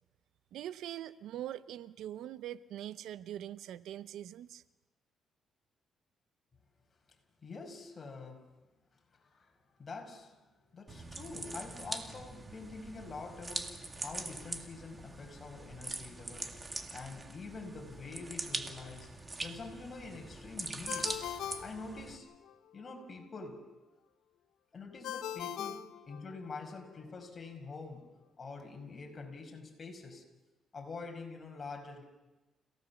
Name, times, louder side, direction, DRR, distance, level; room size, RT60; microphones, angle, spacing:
voice 1, 0.5-4.6, right 12 dB, 80° right, 0.7 m, -43 dB
voice 2, 7.4-8.5 9.1-21.2 21.6-22.3 22.7-23.7 24.7-28.1 28.4-30.2 30.7-32.0, left 3 dB, 35° left, 5.4 m, -46 dB
sound 1, 10.9-22.2, right 2 dB, 25° right, 2.2 m, -43 dB
Ringtone, 20.9-22.5 25.0-26.7, left 10 dB, 85° left, 0.9 m, -41 dB
29.5 x 18.0 x 7.1 m
cardioid pair, 90°, 0 cm